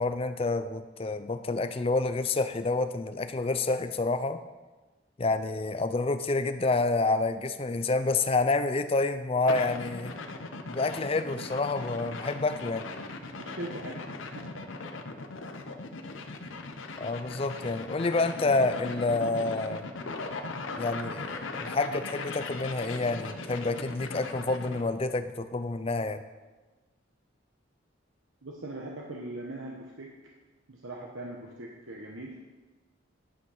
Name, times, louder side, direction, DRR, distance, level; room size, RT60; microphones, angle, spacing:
voice 1, 0.0-4.4 5.2-10.1 10.6-12.8 17.0-19.8 20.8-26.2, left 3 dB, 30° left, 10 dB, 0.5 m, -28 dB
sound 1, 9.5-24.9, left 3 dB, 80° left, 0.8 m, -39 dB
voice 2, 13.4-14.0 14.3-14.5 28.4-30.2 30.7-32.4, right 1 dB, 85° right, -1 dB, 1.1 m, -40 dB
10.5 x 6.2 x 5.6 m, 1.2 s
head